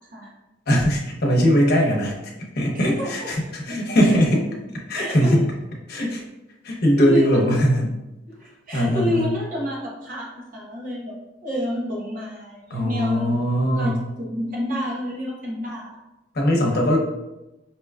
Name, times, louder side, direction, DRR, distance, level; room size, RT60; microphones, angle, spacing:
voice 1, 0.7-2.2 2.5-4.4 4.9-5.4 5.9-6.2 6.6-7.9 8.7-9.3 12.7-14.0 16.3-17.0, equal, 60° left, -1 dB, 0.8 m, -20 dB
voice 2, 2.7-3.3 4.1-4.4 4.9-5.4 6.0-6.1 7.0-7.6 8.3-13.4 13.8-16.0, left 1 dB, 50° right, -4 dB, 1.1 m, -29 dB
4.5 x 2.9 x 2.3 m, 0.97 s
head